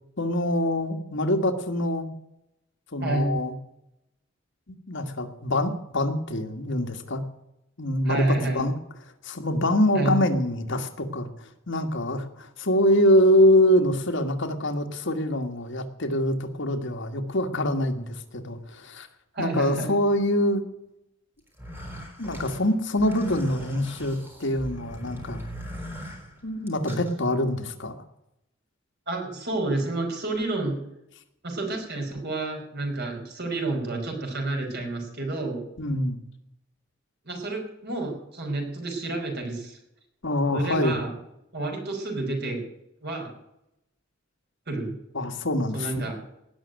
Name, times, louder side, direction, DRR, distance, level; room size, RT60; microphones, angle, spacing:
voice 1, 0.2-2.1 2.9-3.5 4.7-7.2 7.8-8.7 9.2-11.3 11.7-19.1 19.4-20.6 22.2-25.4 26.4-28.0 35.8-36.2 40.2-41.0 45.2-45.9, left 1 dB, 65° left, 6 dB, 1.7 m, -24 dB
voice 2, 3.0-3.4 8.0-8.7 9.9-10.2 19.3-20.0 29.1-30.8 31.4-35.6 37.3-39.8 40.5-41.1 41.5-42.6 43.0-43.4 44.7-44.9 45.7-46.2, right 2 dB, 55° right, 2 dB, 5.1 m, -29 dB
sound 1, 21.5-27.1, equal, 10° right, 5.2 m, -40 dB
18.5 x 6.5 x 9.1 m, 0.83 s
head